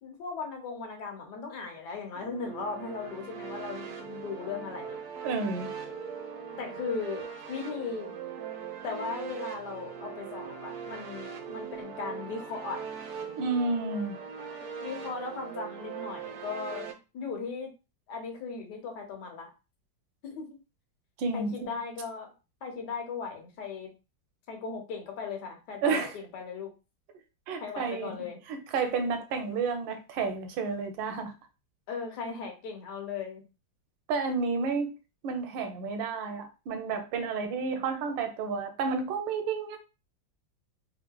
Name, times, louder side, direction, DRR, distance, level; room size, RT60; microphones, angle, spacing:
voice 1, 0.0-5.0 6.6-8.1 8.8-12.8 14.8-17.7 18.1-19.5 20.2-20.5 21.3-22.3 22.6-23.9 24.5-26.7 27.6-28.4 31.9-33.4, left 5 dB, 70° left, 1.4 m, -37 dB
sound 1, 2.1-16.9, right 7 dB, 70° right, 0.8 m, -40 dB
voice 2, 5.2-5.7 13.4-14.1 21.2-21.7 25.8-26.1 27.5-28.1 28.5-31.3 34.1-34.9 35.2-39.8, right 4 dB, 85° right, 1.3 m, -31 dB
3.6 x 2.7 x 2.2 m
omnidirectional pair, 2.0 m